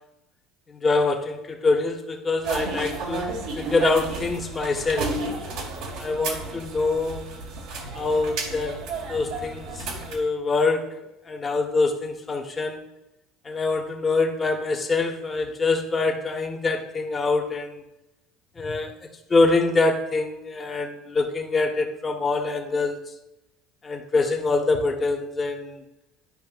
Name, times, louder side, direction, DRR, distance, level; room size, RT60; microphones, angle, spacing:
voice 1, 0.7-5.2 6.0-7.3 7.9-8.8 9.1-12.8 13.4-17.8 18.5-18.9 19.3-23.0 23.8-25.8, left 3 dB, 25° left, 2 dB, 1.5 m, -25 dB
sound 1, 2.4-10.2, right 3 dB, 70° right, 1.9 m, -32 dB
11.0 x 5.3 x 2.5 m, 0.93 s
hypercardioid pair, 80°, 0 cm